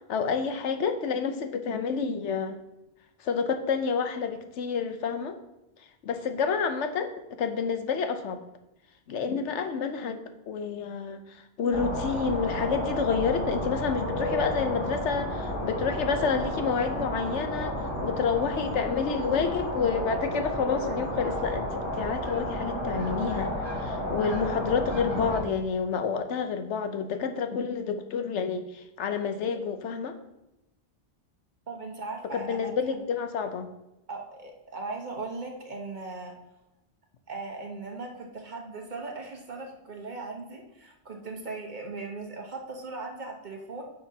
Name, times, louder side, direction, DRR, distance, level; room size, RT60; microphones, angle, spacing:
voice 1, 0.1-2.6 3.2-5.4 6.0-8.4 9.1-10.2 10.5-30.2 32.3-33.7, left 5 dB, 90° left, 8 dB, 1.1 m, -29 dB
sound 1, 11.7-25.4, equal, 25° left, 3.2 m, -32 dB
voice 2, 31.7-32.7 34.1-36.3 37.3-43.8, right 3 dB, 45° right, 1 dB, 1.2 m, -38 dB
10.0 x 6.6 x 2.8 m, 0.92 s
omnidirectional pair, 1.1 m